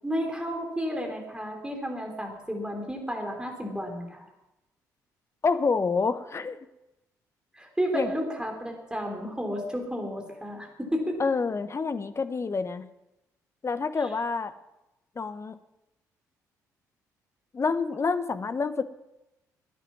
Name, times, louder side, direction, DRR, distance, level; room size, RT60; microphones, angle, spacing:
voice 1, 0.0-4.3 7.5-11.2 14.0-14.1, equal, 10° right, 2 dB, 3.7 m, -32 dB
voice 2, 5.4-6.6 7.9-8.1 11.2-12.8 13.6-14.5 15.2-15.6 17.5-18.8, left 4 dB, 30° left, 11 dB, 1.0 m, -27 dB
18.5 x 10.0 x 6.2 m, 0.94 s
figure-of-eight pair, 45°, 9 cm